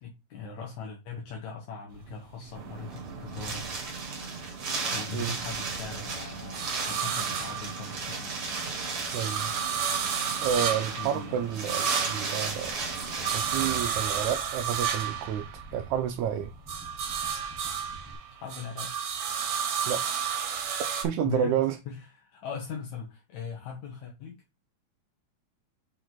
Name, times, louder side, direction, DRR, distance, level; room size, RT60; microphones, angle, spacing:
voice 1, 0.0-3.7 4.9-8.4 11.0-11.8 18.3-19.2 21.2-21.6 21.9-24.4, left 5 dB, 75° left, 2.7 m, -40 dB
sound 1, 2.0-4.3 4.7-8.4 8.7-16.2 16.5-21.1, right 8 dB, 65° right, 2.4 m, -32 dB
Wind, 2.5-13.8, right 4 dB, 50° right, 2.5 m, -35 dB
voice 2, 9.1-9.5 10.4-12.7 13.3-15.5 15.7-16.5 19.9-20.0 21.0-21.8, right 9 dB, 85° right, 2.0 m, -29 dB
sound 2, 12.4-18.1, right 1 dB, 5° right, 1.8 m, -48 dB
6.4 x 4.9 x 3.8 m
omnidirectional pair, 3.4 m